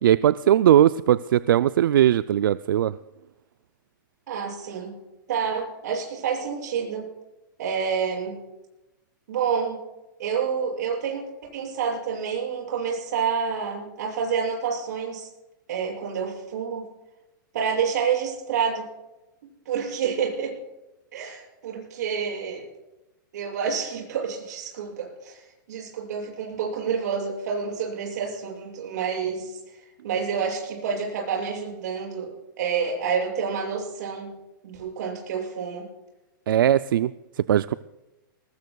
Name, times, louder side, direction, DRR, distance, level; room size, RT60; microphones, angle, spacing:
voice 1, 0.0-3.0 36.5-37.7, right 11 dB, 85° right, 14 dB, 0.4 m, -19 dB
voice 2, 4.3-4.9 5.3-7.1 7.6-8.4 9.3-9.8 10.2-15.3 15.7-16.9 17.5-18.9 19.6-20.6 21.1-22.6 23.3-34.3 34.6-35.9, right 6 dB, 55° right, -1 dB, 6.5 m, -28 dB
21.5 x 19.5 x 2.3 m, 1.0 s
supercardioid pair, 175°, 11 cm